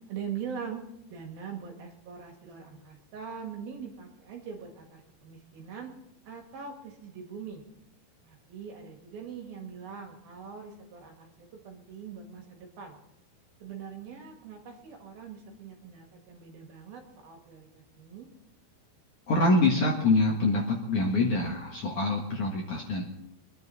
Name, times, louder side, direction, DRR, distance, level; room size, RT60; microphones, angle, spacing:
voice 1, 0.1-0.8 1.1-5.9 6.2-7.6 8.2-13.0 13.6-18.3, right 7 dB, 60° right, 2 dB, 3.3 m, -42 dB
voice 2, 19.3-23.0, left 2 dB, 60° left, -1 dB, 2.3 m, -25 dB
24.0 x 10.5 x 4.2 m, 0.83 s
omnidirectional pair, 5.3 m